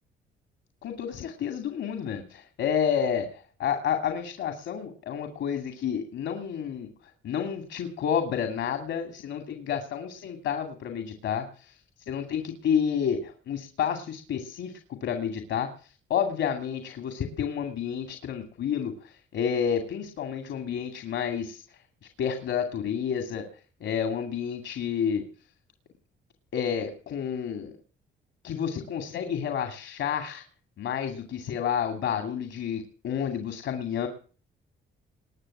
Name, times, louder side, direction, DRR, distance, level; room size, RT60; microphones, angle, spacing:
voice 1, 0.8-6.9 7.2-11.8 12.1-14.7 15.0-21.6 22.2-23.5 23.8-25.2 26.5-27.7 28.4-30.4 30.8-34.1, left 8 dB, 70° left, 7 dB, 2.3 m, -30 dB
20.5 x 6.9 x 9.9 m, 0.42 s
cardioid pair, 90°, 20 cm